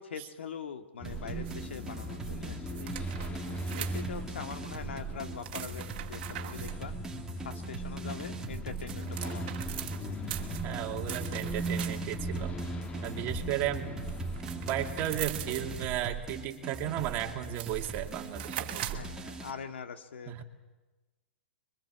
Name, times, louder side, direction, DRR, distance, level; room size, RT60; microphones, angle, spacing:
voice 1, 0.0-2.9 3.2-7.0 7.4-9.4 18.9-20.4, left 6 dB, 85° left, 7 dB, 2.0 m, -43 dB
sound 1, 1.0-15.9, right 1 dB, 20° left, 1.8 m, -39 dB
sound 2, 1.0-19.5, right 3 dB, 10° right, 2.9 m, -41 dB
sound 3, 1.4-2.0 2.7-4.4 5.4-6.8 8.3-12.2 14.1-16.0 17.0-17.1 17.4-19.1, right 13 dB, 55° right, 2.2 m, -42 dB
voice 2, 10.6-12.5 13.0-14.0 14.7-19.3 20.3-20.4, right 12 dB, 35° right, 3 dB, 2.6 m, -35 dB
25.5 x 23.0 x 7.5 m, 1.2 s
hypercardioid pair, 135°, 6 cm